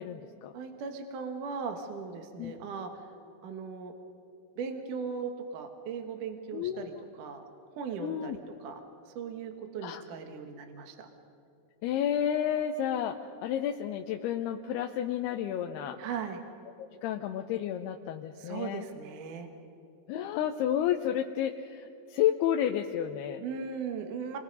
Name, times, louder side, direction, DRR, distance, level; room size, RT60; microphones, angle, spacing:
voice 1, 0.0-0.5 2.4-2.5 6.5-7.0 8.0-8.4 9.8-10.0 11.8-16.0 17.0-18.9 20.1-23.4, left 10 dB, 80° left, 4 dB, 2.6 m, -31 dB
voice 2, 0.5-2.9 3.4-3.9 4.6-6.9 7.2-7.4 7.8-8.8 9.1-11.1 16.0-16.4 18.4-19.5 23.4-24.4, right 6 dB, 60° right, 5 dB, 2.5 m, -38 dB
29.0 x 22.5 x 5.4 m, 2.6 s
omnidirectional pair, 4.9 m